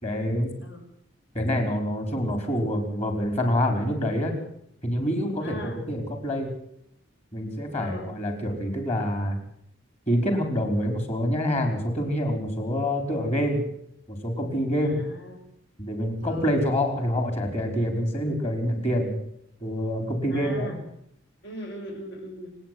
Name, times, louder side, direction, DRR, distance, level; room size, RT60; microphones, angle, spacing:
voice 1, 0.0-0.5 1.3-4.3 4.8-6.5 7.3-9.4 10.1-13.6 14.1-15.0 15.8-19.2 19.6-20.7, equal, 35° left, 4 dB, 4.8 m, -26 dB
voice 2, 5.4-5.8 7.7-8.1 14.8-15.4 16.2-16.5 20.3-20.8 21.4-22.6, left 1 dB, 65° left, 1 dB, 6.2 m, -39 dB
28.0 x 9.4 x 9.7 m, 0.73 s
head